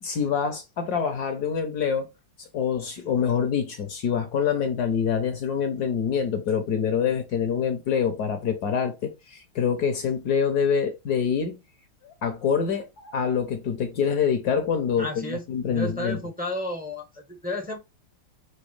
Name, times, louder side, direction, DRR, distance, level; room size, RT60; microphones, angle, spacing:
voice 1, 0.0-2.1 2.5-11.6 12.0-16.2, left 7 dB, 60° left, 1.1 m, -26 dB
voice 2, 15.0-17.8, left 1 dB, 10° right, 0.4 m, -32 dB
6.2 x 2.7 x 3.1 m
omnidirectional pair, 2.3 m